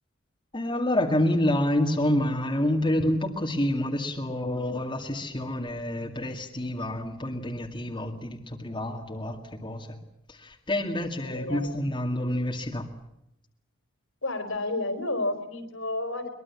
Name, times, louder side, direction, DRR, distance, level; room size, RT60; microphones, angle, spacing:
voice 1, 0.5-10.0 10.3-12.9, left 1 dB, 25° left, 2 dB, 2.2 m, -28 dB
voice 2, 11.3-11.7 14.2-16.3, left 2 dB, 70° left, 8 dB, 4.1 m, -31 dB
23.0 x 22.0 x 7.3 m, 0.82 s
head